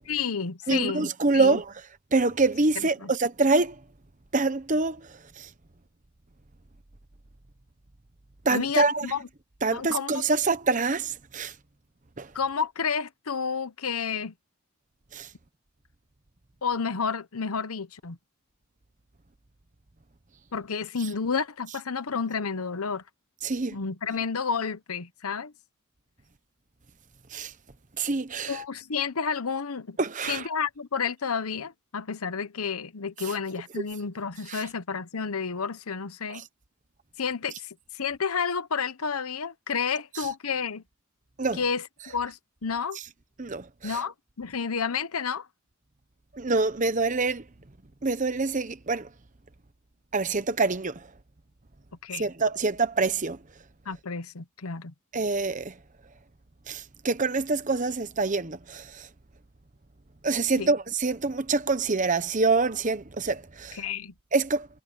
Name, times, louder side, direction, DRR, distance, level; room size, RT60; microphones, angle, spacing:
voice 1, 0.1-1.6 2.8-3.1 8.5-9.2 9.7-10.2 12.3-14.3 16.6-18.2 20.5-23.0 23.7-25.5 28.5-30.0 30.2-36.5 37.2-40.8 41.5-43.0 43.8-45.5 52.0-52.3 53.9-54.9 60.6-60.7 63.7-64.1, left 6 dB, 90° left, 1.0 m, -30 dB
voice 2, 0.7-1.7 2.1-3.8 4.3-5.0 5.4-5.5 8.4-9.1 9.6-11.5 12.2-12.3 15.1-15.3 23.4-23.8 27.3-27.5 28.0-28.6 30.0-30.5 34.5-34.6 36.3-36.4 40.1-40.3 41.4-41.6 43.4-44.0 46.3-47.4 48.0-49.1 50.1-51.0 52.2-53.4 55.1-55.7 56.7-59.1 60.2-63.8 64.3-64.7, right 3 dB, 35° right, 1.0 m, -26 dB
head